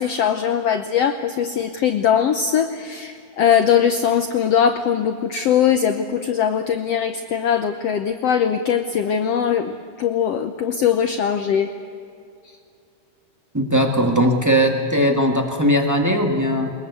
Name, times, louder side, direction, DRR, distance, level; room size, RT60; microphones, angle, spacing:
voice 1, 0.0-11.7, left 8 dB, 75° left, 7 dB, 1.4 m, -20 dB
voice 2, 13.5-16.7, equal, 25° right, 1 dB, 0.3 m, -19 dB
22.5 x 21.5 x 8.2 m, 2.5 s
omnidirectional pair, 3.8 m